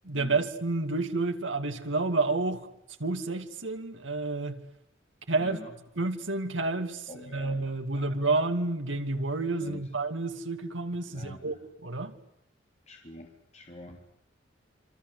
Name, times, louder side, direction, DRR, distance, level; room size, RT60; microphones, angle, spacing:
voice 1, 0.0-2.7 3.0-4.6 5.3-5.6 6.0-11.5 11.8-12.1, right 3 dB, 85° right, 2.7 m, -30 dB
voice 2, 5.4-5.8 7.1-7.6 7.9-8.3 9.6-9.9 11.1-11.6 12.9-14.1, left 1 dB, 35° left, 3.3 m, -46 dB
27.0 x 26.0 x 8.3 m
head